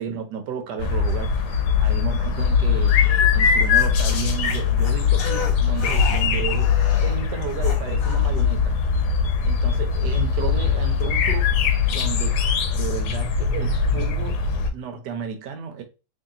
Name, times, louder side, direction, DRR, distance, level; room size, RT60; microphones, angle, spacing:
voice 1, 0.0-3.0 3.3-8.8 9.4-11.5 11.9-12.4 12.7-14.4 14.7-15.8, right 7 dB, 80° right, 1.4 m, -32 dB
sound 1, 0.8-14.7, left 6 dB, 75° left, 1.2 m, -21 dB
sound 2, 2.9-8.4, left 4 dB, 60° left, 1.4 m, -36 dB
3.1 x 2.8 x 3.8 m
omnidirectional pair, 1.8 m